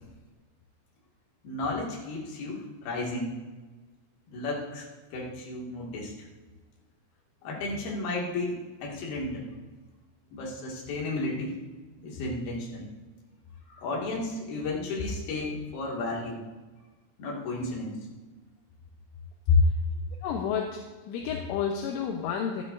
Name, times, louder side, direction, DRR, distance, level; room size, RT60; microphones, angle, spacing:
voice 1, 1.4-3.4 4.3-6.1 7.4-9.5 10.3-11.6 12.0-12.9 13.7-16.4 17.2-18.0 19.5-19.6, left 3 dB, 55° left, -3 dB, 3.6 m, -32 dB
voice 2, 20.2-20.8 21.1-22.6, left 7 dB, 80° left, 1 dB, 3.2 m, -30 dB
15.5 x 12.5 x 2.6 m, 1.3 s
omnidirectional pair, 5.9 m